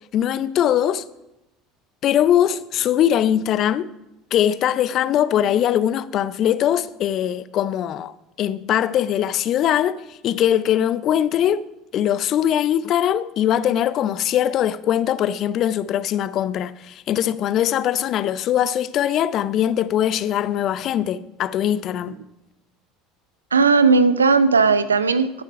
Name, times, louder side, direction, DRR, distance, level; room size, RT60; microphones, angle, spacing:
voice 1, 0.1-1.0 2.0-3.9 4.3-11.7 11.9-22.2, left 10 dB, 50° left, 0.5 m, -21 dB
voice 2, 23.5-25.4, right 4 dB, 90° right, 0.5 m, -16 dB
11.5 x 6.9 x 5.7 m
hypercardioid pair, 70°, 0 cm